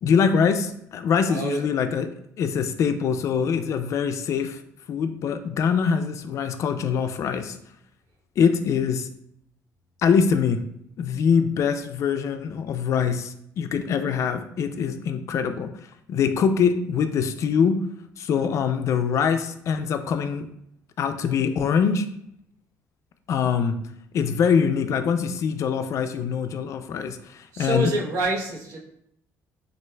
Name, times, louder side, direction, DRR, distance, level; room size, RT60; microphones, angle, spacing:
voice 1, 0.0-2.1 2.4-4.6 4.9-7.6 8.4-9.1 10.0-10.6 11.0-15.7 16.1-17.8 18.2-20.5 21.0-22.1 23.3-23.8 24.1-27.9, left 6 dB, 55° left, 9 dB, 0.4 m, -23 dB
voice 2, 1.3-1.7 27.5-28.8, right 2 dB, 70° right, -2 dB, 1.0 m, -26 dB
6.1 x 2.4 x 2.3 m, 0.74 s
cardioid pair, 110°, 6 cm